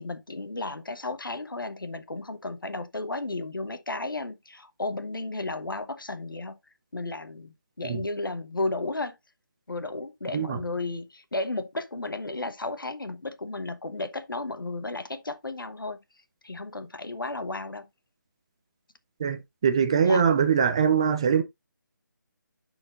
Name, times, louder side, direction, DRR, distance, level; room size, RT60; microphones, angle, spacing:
voice 1, 0.0-6.6 6.9-9.2 9.7-16.0 16.4-17.9 20.0-20.2, left 2 dB, 90° left, 1.1 m, -33 dB
voice 2, 19.2-21.4, right 7 dB, 15° right, 0.4 m, -22 dB
12.0 x 4.4 x 2.5 m
figure-of-eight pair, 160°, 11 cm